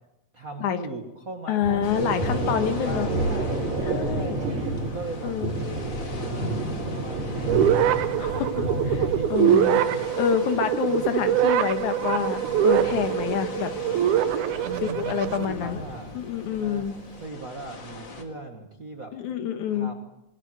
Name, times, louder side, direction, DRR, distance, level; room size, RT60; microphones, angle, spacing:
voice 1, 0.3-3.4 3.8-6.6 6.9-10.0 10.9-11.5 14.6-16.2 16.6-16.9 17.2-19.1 19.7-19.9, right 3 dB, 35° right, 2 dB, 1.5 m, -38 dB
voice 2, 1.5-3.1 3.8-4.4 5.2-5.5 8.2-9.8 10.2-13.7 14.8-15.8 16.1-16.9 19.1-19.9, left 8 dB, 80° left, 8 dB, 2.8 m, -27 dB
Thunder, 1.6-17.1, right 2 dB, 70° right, 5.1 m, -32 dB
sound 1, 1.8-18.2, left 4 dB, 40° left, 2.7 m, -41 dB
sound 2, 7.5-15.5, right 10 dB, 85° right, 2.4 m, -24 dB
21.0 x 18.5 x 7.7 m, 0.89 s
omnidirectional pair, 3.4 m